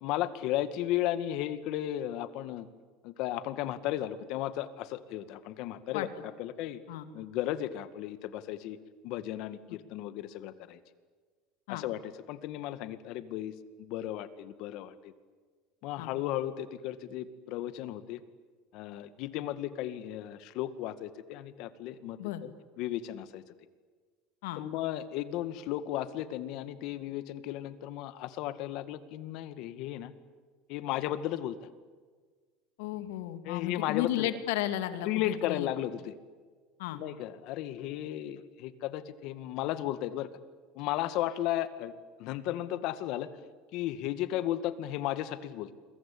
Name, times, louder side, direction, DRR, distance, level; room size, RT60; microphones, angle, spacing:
voice 1, 0.0-2.7 3.0-6.1 6.4-6.8 7.1-8.8 9.0-10.8 11.7-15.1 15.8-18.2 18.7-22.5 22.8-23.4 24.6-30.1 30.7-31.6 33.4-34.3 35.0-36.1 36.9-40.3 40.8-41.9 42.2-43.3 43.7-45.7, left 13 dB, 60° left, 12 dB, 2.0 m, -35 dB
voice 2, 32.8-35.7 36.8-37.0, left 13 dB, 85° left, 9 dB, 2.6 m, -34 dB
28.5 x 23.5 x 8.7 m, 1.5 s
supercardioid pair, 135°, 0 cm